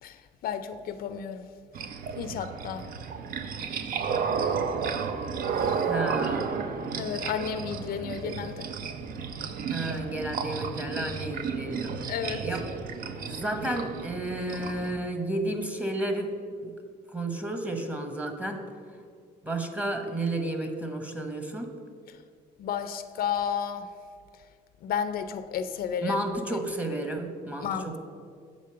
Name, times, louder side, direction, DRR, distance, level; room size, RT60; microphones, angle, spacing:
voice 1, 0.4-1.5 2.2-2.9 7.0-8.7 12.1-12.4 22.6-23.9 24.8-26.2 27.6-28.0, left 8 dB, 60° left, 10 dB, 0.5 m, -32 dB
sound 1, 1.7-14.9, right 6 dB, 60° right, 0.6 m, -32 dB
voice 2, 5.8-6.6 9.7-16.3 16.6-16.7 17.1-18.6 19.4-21.7 26.0-28.0, right 1 dB, 10° right, 5 dB, 1.0 m, -32 dB
7.1 x 5.2 x 6.7 m, 2.1 s
cardioid pair, 110°, 17 cm